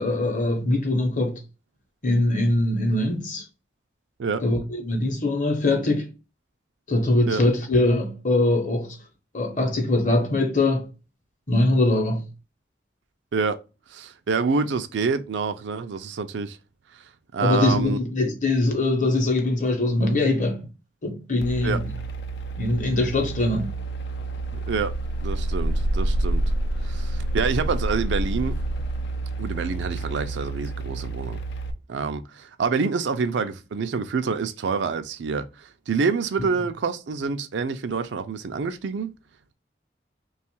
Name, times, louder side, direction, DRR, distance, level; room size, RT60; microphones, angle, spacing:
voice 1, 0.0-1.4 2.0-3.4 4.4-6.1 6.9-9.0 9.3-10.9 11.5-12.3 17.4-20.7 21.0-21.9 22.6-23.8 36.4-36.5, left 2 dB, 45° left, 0.8 m, -22 dB
voice 2, 13.9-16.6 16.9-17.0 17.3-18.0 21.6-21.8 24.5-24.9 25.2-26.5 26.8-28.6 29.4-31.4 31.9-39.1, right 5 dB, 85° right, 0.4 m, -27 dB
sound 1, 21.4-31.7, right 2 dB, 75° left, 0.4 m, -28 dB
3.0 x 2.4 x 4.3 m
head